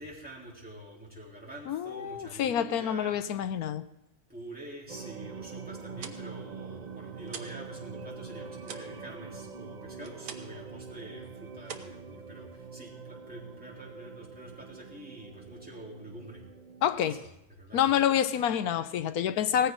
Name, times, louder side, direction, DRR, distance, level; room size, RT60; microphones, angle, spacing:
voice 1, 0.0-3.2 4.3-16.4 17.0-17.3 17.6-17.8, right 1 dB, 5° right, 3.7 m, -46 dB
voice 2, 1.7-3.9 16.8-17.2 17.7-19.7, left 9 dB, 85° left, 1.2 m, -27 dB
sound 1, 4.9-16.9, right 5 dB, 40° right, 0.6 m, -44 dB
sound 2, 5.9-7.7 8.0-10.7 11.0-11.3 11.6-12.7, right 6 dB, 80° right, 1.5 m, -45 dB
18.0 x 15.0 x 3.9 m
omnidirectional pair, 1.5 m